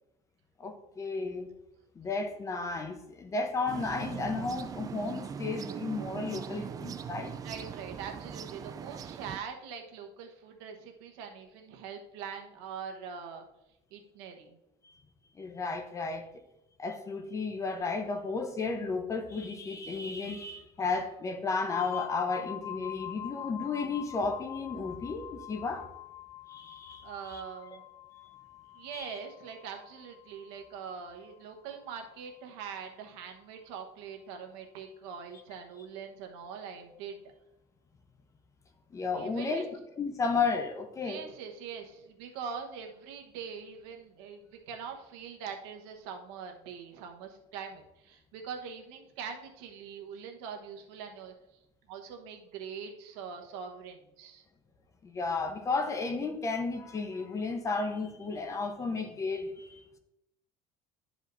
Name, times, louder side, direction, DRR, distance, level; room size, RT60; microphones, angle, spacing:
voice 1, 0.6-1.5 2.0-7.3 15.4-16.4 16.8-25.9 26.5-27.4 28.9-29.2 38.9-41.2 55.0-60.0, left 4 dB, 20° left, 7 dB, 0.8 m, -33 dB
sound 1, 3.7-9.4, right 7 dB, 25° right, 0.3 m, -40 dB
voice 2, 7.4-13.4 13.9-14.6 27.0-27.8 28.7-37.2 39.1-39.7 41.0-51.3 51.9-54.4, right 6 dB, 85° right, 3 dB, 1.2 m, -43 dB
sound 2, 21.7-31.3, left 13 dB, 55° left, 0.6 m, -44 dB
12.0 x 5.0 x 2.6 m, 0.89 s
cardioid pair, 140°, 14 cm